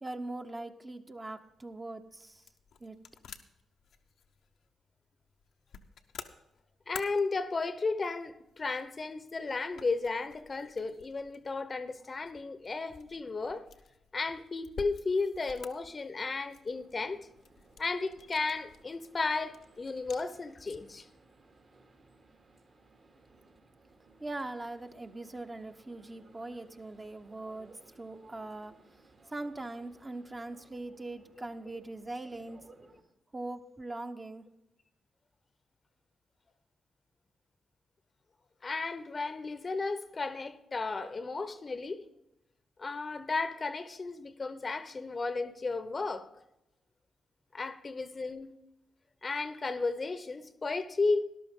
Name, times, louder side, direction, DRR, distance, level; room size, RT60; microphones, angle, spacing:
voice 1, 0.0-2.4 2.8-3.0 24.2-28.7 29.3-32.6 33.3-34.4, right 2 dB, 30° right, 1.0 m, -41 dB
sound 1, 1.4-21.0, left 6 dB, 70° left, 0.8 m, -53 dB
voice 2, 6.9-13.7 14.1-17.3 17.8-21.1 31.4-31.5 38.6-42.1 42.8-46.3 47.5-48.5 49.2-51.2, left 3 dB, 40° left, 0.8 m, -34 dB
sound 2, 16.7-33.0, right 3 dB, 55° right, 2.4 m, -61 dB
13.5 x 11.5 x 3.7 m
hypercardioid pair, 45°, 0 cm